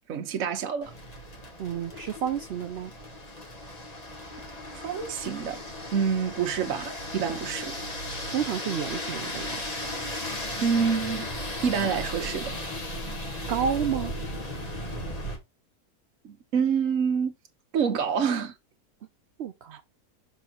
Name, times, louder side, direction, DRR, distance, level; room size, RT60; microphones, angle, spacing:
voice 1, 0.1-0.9 4.7-5.6 5.9-7.8 10.6-11.3 11.6-12.5 16.2-17.3 17.7-18.5, right 6 dB, 55° right, 1.2 m, -27 dB
sound 1, 0.8-15.4, left 1 dB, 25° left, 1.4 m, -36 dB
voice 2, 1.6-2.9 8.3-9.6 13.5-14.1 19.4-19.8, right 8 dB, 75° right, 0.5 m, -30 dB
6.1 x 3.8 x 4.4 m
omnidirectional pair, 1.7 m